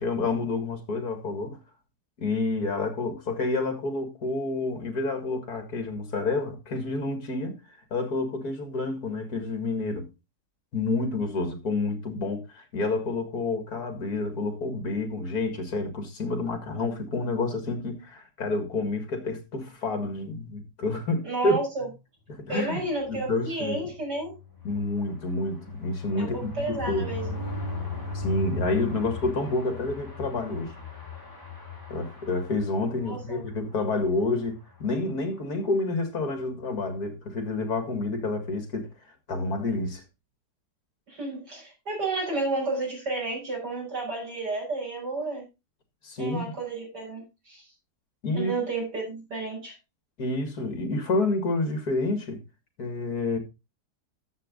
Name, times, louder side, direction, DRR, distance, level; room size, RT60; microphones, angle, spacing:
voice 1, 0.0-1.6 2.2-7.6 7.9-10.1 10.7-21.6 22.3-23.9 24.6-27.1 28.1-30.7 31.9-38.9 39.3-40.0 46.0-46.4 48.2-48.5 50.2-52.4 52.8-53.4, left 3 dB, 65° left, 2.5 m, -29 dB
voice 2, 21.2-21.8 22.5-24.3 26.2-27.3 33.0-33.4 41.1-45.4 46.2-47.6 48.3-49.7, right 2 dB, 80° right, 6.6 m, -31 dB
sound 1, 24.2-33.0 33.5-33.6 33.9-34.0 34.3-34.5, left 3 dB, 10° left, 3.2 m, -37 dB
11.5 x 7.5 x 3.9 m
omnidirectional pair, 1.8 m